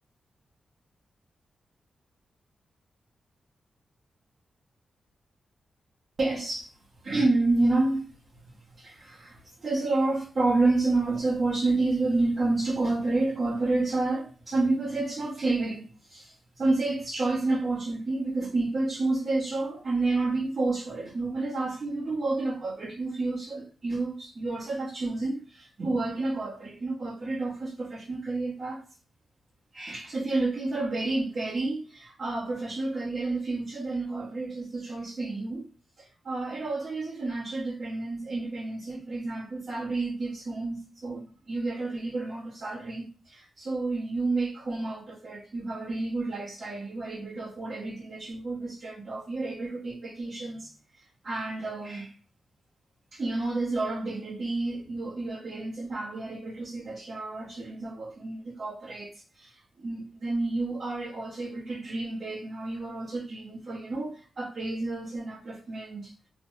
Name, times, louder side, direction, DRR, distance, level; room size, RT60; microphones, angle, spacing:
voice 1, 6.2-6.7 7.0-8.1 8.7-28.8 29.7-35.7 36.0-52.1 53.1-66.1, right 2 dB, 50° right, 0.9 m, -30 dB
2.9 x 2.0 x 3.1 m
wide cardioid pair, 105°, 0 cm